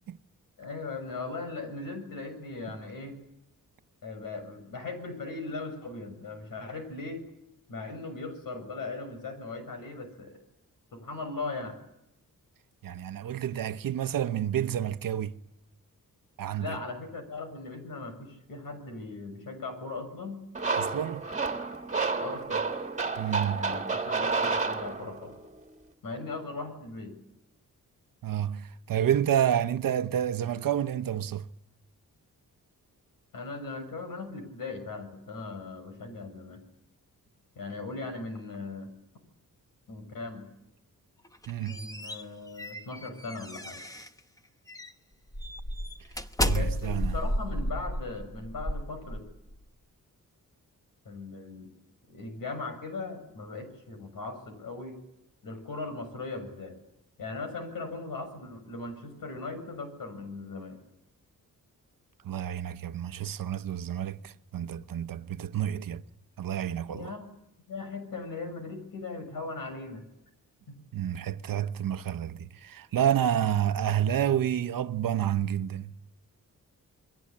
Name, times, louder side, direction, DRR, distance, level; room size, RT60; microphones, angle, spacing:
voice 1, 0.6-3.2 4.0-7.3 7.7-10.4 10.9-11.8 16.6-20.4 22.2-22.7 23.6-25.4 26.0-27.2 33.3-36.6 37.6-38.9 39.9-40.5 41.6-43.8 46.5-49.3 51.1-51.7 52.1-55.0 55.4-56.8 57.2-60.8 66.9-67.3 67.7-70.0 70.7-70.8, left 3 dB, 80° left, 7.2 m, -38 dB
voice 2, 12.8-15.3 16.4-16.8 20.8-21.2 23.2-23.7 28.2-31.5 41.5-41.9 46.4-47.2 62.2-66.0 66.4-67.1 70.9-75.9, right 10 dB, 80° right, 1.0 m, -29 dB
sound 1, 20.5-25.3, right 4 dB, 20° right, 2.1 m, -30 dB
sound 2, 41.2-44.2 44.7-44.9 45.3-49.6, equal, 10° left, 1.0 m, -33 dB
29.0 x 22.5 x 8.6 m
wide cardioid pair, 145°, 33 cm